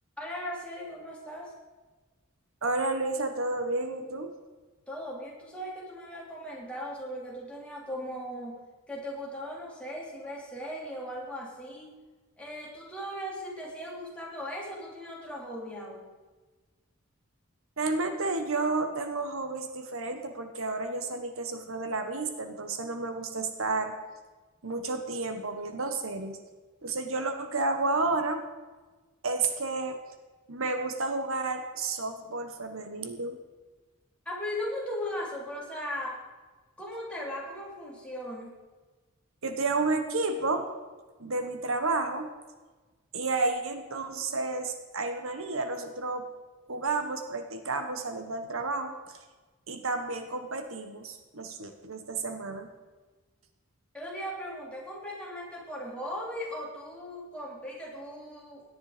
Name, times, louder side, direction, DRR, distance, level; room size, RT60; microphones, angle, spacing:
voice 1, 0.2-1.5 4.9-8.6 8.9-12.0 12.4-16.1 34.3-36.2 36.8-38.6 53.9-58.6, equal, 5° left, -4 dB, 3.4 m, -38 dB
voice 2, 2.6-4.3 17.8-23.9 24.6-26.4 26.8-28.5 29.2-30.0 30.5-33.4 39.4-40.7 41.2-42.3 43.1-46.3 46.7-49.2 49.7-52.7, right 3 dB, 70° right, 7 dB, 1.3 m, -31 dB
17.5 x 10.5 x 5.1 m, 1.3 s
head